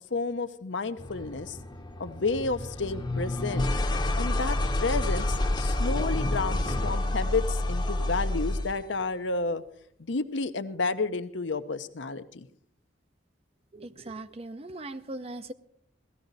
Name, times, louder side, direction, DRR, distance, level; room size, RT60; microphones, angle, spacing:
voice 1, 0.1-1.6 2.0-3.7 4.2-9.6 10.0-12.5, left 3 dB, 75° left, 10 dB, 0.8 m, -31 dB
sound 1, 1.0-8.8, left 1 dB, 25° left, 0.8 m, -29 dB
voice 2, 13.7-15.5, right 2 dB, 30° right, 12 dB, 0.6 m, -39 dB
17.0 x 14.0 x 4.0 m, 0.65 s
head